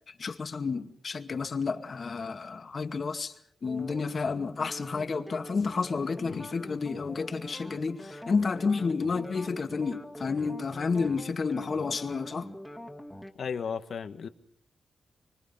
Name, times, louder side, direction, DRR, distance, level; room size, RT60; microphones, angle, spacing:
voice 1, 0.1-3.3 3.6-12.5, left 4 dB, 50° left, 2.2 m, -31 dB
sound 1, 3.6-13.3, equal, ahead, 2.2 m, -44 dB
voice 2, 13.4-14.3, left 6 dB, 70° left, 1.7 m, -35 dB
25.5 x 24.5 x 5.8 m
cardioid pair, 95°, 0 cm